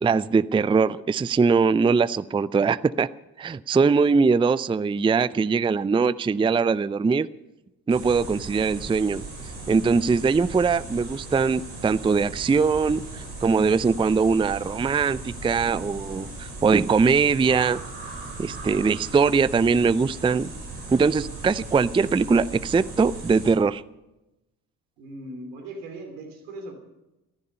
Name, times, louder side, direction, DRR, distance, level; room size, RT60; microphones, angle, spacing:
voice 1, 0.0-3.1 3.4-7.3 7.9-9.2 9.7-17.8 18.4-20.5 20.9-23.8, right 5 dB, 10° right, 19 dB, 0.5 m, -21 dB
sound 1, 7.9-23.5, right 2 dB, 65° right, 6.9 m, -38 dB
voice 2, 25.0-26.7, right 1 dB, 80° right, 5 dB, 3.1 m, -39 dB
17.5 x 14.5 x 5.5 m, 0.95 s
figure-of-eight pair, 45°, 48 cm